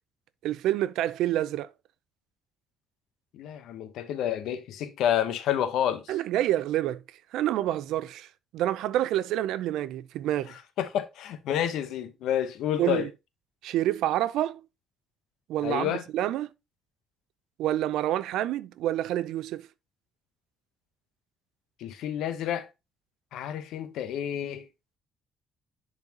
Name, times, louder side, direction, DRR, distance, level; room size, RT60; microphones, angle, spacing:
voice 1, 0.4-1.7 6.1-7.0 7.3-8.3 8.5-10.5 12.8-13.1 13.6-14.6 15.5-16.5 17.6-19.6, right 13 dB, 85° right, 0.5 m, -28 dB
voice 2, 3.3-6.0 10.8-13.1 15.6-16.0 21.8-22.7 23.3-24.6, left 10 dB, 80° left, 0.9 m, -29 dB
10.5 x 4.1 x 2.9 m
cardioid pair, 160°, 0 cm